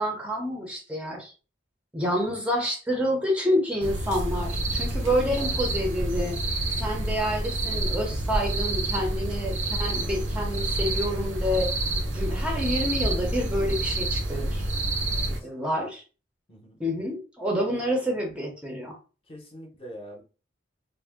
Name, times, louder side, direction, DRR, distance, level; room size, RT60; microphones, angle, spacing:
voice 1, 0.0-1.3 1.9-6.4 6.8-11.7 12.1-14.7 15.4-16.0 16.8-19.0, equal, 5° right, 0 dB, 0.6 m, -28 dB
sound 1, 3.8-15.4, right 2 dB, 70° right, 0.7 m, -28 dB
voice 2, 5.0-5.6 15.3-15.9 16.5-16.8 19.3-20.2, equal, 30° left, 0 dB, 0.7 m, -44 dB
2.5 x 2.0 x 3.5 m, 0.35 s
head